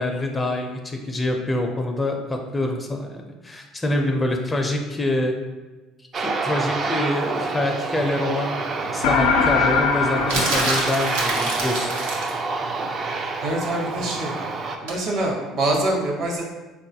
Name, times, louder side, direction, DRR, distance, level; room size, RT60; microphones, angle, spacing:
voice 1, 0.0-5.3 6.2-11.9, left 1 dB, 20° left, 3 dB, 0.4 m, -26 dB
Aircraft, 6.1-14.8, right 3 dB, 40° right, 0.4 m, -28 dB
sound 1, 9.0-11.7, left 5 dB, 80° left, 0.3 m, -22 dB
sound 2, 10.3-12.4 14.9-15.1, right 2 dB, 85° right, 0.7 m, -26 dB
voice 2, 13.4-14.3 14.8-16.4, right 1 dB, 60° right, -1 dB, 0.9 m, -24 dB
3.8 x 2.3 x 2.7 m, 1.2 s
supercardioid pair, 80°, 0 cm